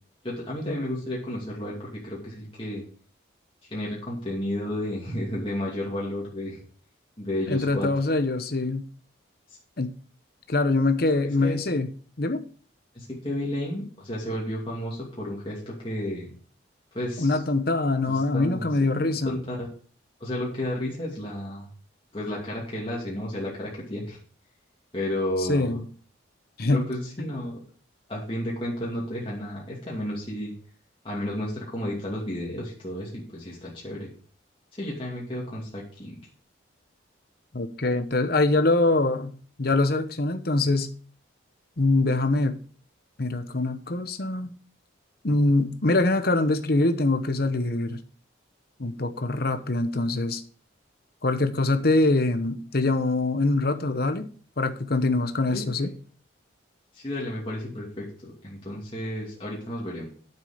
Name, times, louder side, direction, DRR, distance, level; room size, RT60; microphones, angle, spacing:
voice 1, 0.2-2.8 3.6-6.6 7.2-7.9 9.5-9.6 11.2-11.6 12.9-16.3 16.9-17.4 18.1-18.7 18.9-19.7 20.2-21.7 22.1-24.2 24.9-25.8 26.7-27.6 28.1-30.5 31.0-34.1 34.7-36.2 55.5-55.9 56.9-60.1, left 1 dB, 25° left, 2.6 m, -32 dB
voice 2, 7.5-8.9 9.8-9.9 10.5-11.9 12.2-12.4 17.2-19.4 25.5-25.8 26.6-26.9 37.5-40.9 41.8-42.6 43.2-44.5 45.2-48.0 48.8-50.4 51.2-54.3 54.6-55.9, left 2 dB, 50° left, 1.0 m, -24 dB
9.6 x 7.4 x 5.1 m
head